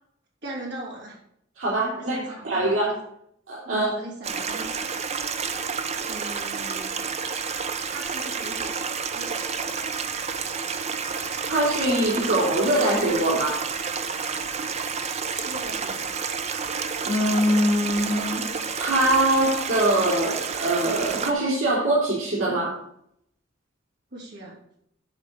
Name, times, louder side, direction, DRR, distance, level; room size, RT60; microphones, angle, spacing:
voice 1, 0.4-1.2 2.0-3.0 3.7-4.9 6.1-7.0 7.9-8.8 9.1-9.5 15.3-16.1 24.1-24.6, right 1 dB, 60° right, -5 dB, 3.6 m, -39 dB
voice 2, 1.6-2.2 2.4-2.9 3.5-3.9 11.5-13.6 17.0-22.8, right 1 dB, 85° right, -6 dB, 3.2 m, -23 dB
Stream, 4.2-21.3, right 5 dB, 35° right, 0.6 m, -30 dB
11.0 x 4.2 x 6.7 m, 0.73 s
head